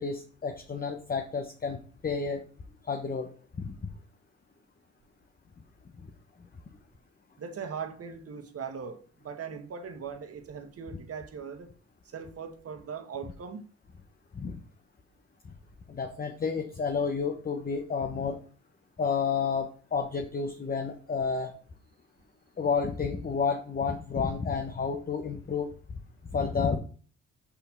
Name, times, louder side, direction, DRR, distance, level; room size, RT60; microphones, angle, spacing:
voice 1, 0.0-2.4 2.9-3.3 3.6-3.7 14.3-14.6 15.9-18.4 19.0-21.5 22.6-25.7 26.3-26.8, left 5 dB, 30° left, 0.9 m, -30 dB
voice 2, 7.4-11.7 12.1-13.7, right 6 dB, 50° right, 1.4 m, -40 dB
5.6 x 4.4 x 5.8 m
cardioid pair, 90°, 30 cm